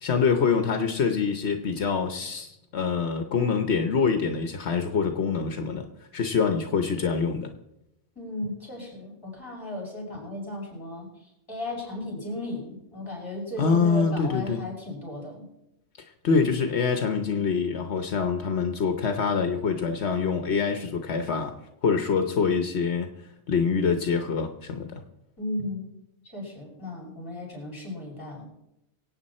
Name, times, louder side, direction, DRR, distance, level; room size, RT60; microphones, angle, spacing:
voice 1, 0.0-7.5 13.6-14.6 16.2-23.1 23.5-25.0, left 5 dB, 80° left, 6 dB, 1.3 m, -25 dB
voice 2, 8.1-15.5 25.4-25.8 26.2-28.5, left 1 dB, 20° left, -2 dB, 6.2 m, -35 dB
24.0 x 8.7 x 4.3 m, 0.85 s
omnidirectional pair, 1.1 m